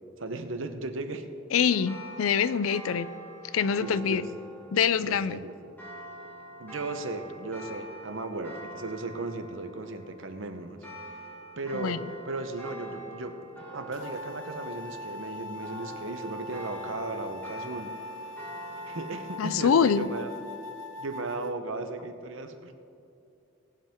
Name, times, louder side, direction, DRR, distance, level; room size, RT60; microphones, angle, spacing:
voice 1, 0.2-1.3 3.8-4.3 5.0-5.5 6.6-11.3 11.6-13.4 13.7-18.0 18.9-20.3 21.0-22.7, right 2 dB, 70° right, 8 dB, 0.9 m, -36 dB
voice 2, 1.5-3.1 3.5-4.3 4.7-5.4 11.7-12.0 19.4-20.1, left 7 dB, 80° left, 16 dB, 0.4 m, -25 dB
sound 1, 1.6-19.6, right 1 dB, 10° left, 1.8 m, -45 dB
sound 2, 13.9-21.5, left 2 dB, 65° left, 0.8 m, -41 dB
18.5 x 7.5 x 3.6 m, 2.7 s
head